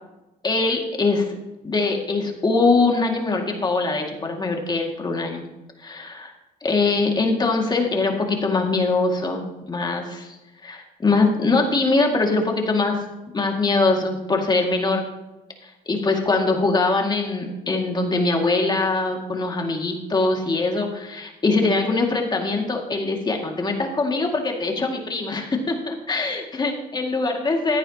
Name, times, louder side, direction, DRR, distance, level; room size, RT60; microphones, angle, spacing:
voice 1, 0.4-1.4 1.6-5.4 5.8-6.3 6.6-10.4 10.6-13.0 13.3-15.0 15.6-27.8, left 3 dB, 25° left, 2 dB, 2.1 m, -22 dB
14.5 x 9.8 x 2.9 m, 1.0 s
cardioid pair, 110°, 17 cm